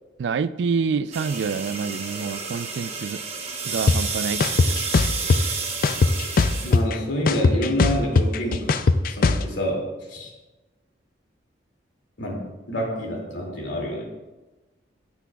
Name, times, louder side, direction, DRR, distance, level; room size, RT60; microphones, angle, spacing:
voice 1, 0.2-3.2 3.6-4.4 4.7-4.8, right 5 dB, 70° right, 16 dB, 0.3 m, -27 dB
sound 1, 1.1-6.8, right 5 dB, 35° right, 1.1 m, -31 dB
sound 2, 3.9-4.0 4.4-5.4 5.8-7.0 7.3-9.4, left 4 dB, 50° left, 0.4 m, -18 dB
voice 2, 6.6-8.7 9.2-10.3 12.2-14.0, equal, 80° left, -1 dB, 2.4 m, -28 dB
15.0 x 6.1 x 2.3 m, 1.1 s
head